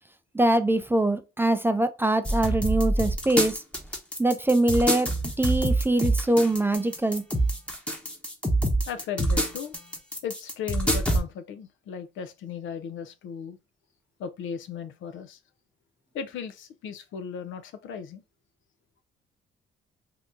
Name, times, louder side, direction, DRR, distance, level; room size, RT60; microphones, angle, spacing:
voice 1, 0.3-3.6 4.2-5.1 5.4-7.2, right 1 dB, 10° right, 0.4 m, -23 dB
sound 1, 2.2-11.2, right 1 dB, 5° left, 0.9 m, -26 dB
voice 2, 8.9-9.8 10.2-13.6 14.2-15.4 16.1-18.2, left 7 dB, 75° left, 0.6 m, -36 dB
2.8 x 2.5 x 3.5 m
cardioid pair, 90°, 20 cm